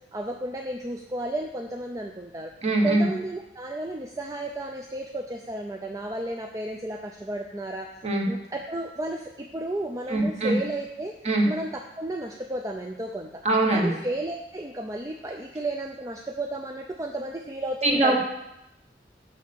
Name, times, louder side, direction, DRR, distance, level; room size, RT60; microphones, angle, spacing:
voice 1, 0.1-2.5 2.8-7.9 8.3-11.2 11.4-13.3 13.7-18.2, right 1 dB, 20° right, 2 dB, 0.5 m, -33 dB
voice 2, 2.6-3.0 8.0-8.2 10.1-10.5 11.2-11.5 13.4-14.0 17.8-18.2, right 2 dB, 35° right, 1 dB, 1.3 m, -22 dB
6.3 x 5.3 x 6.8 m, 0.87 s
head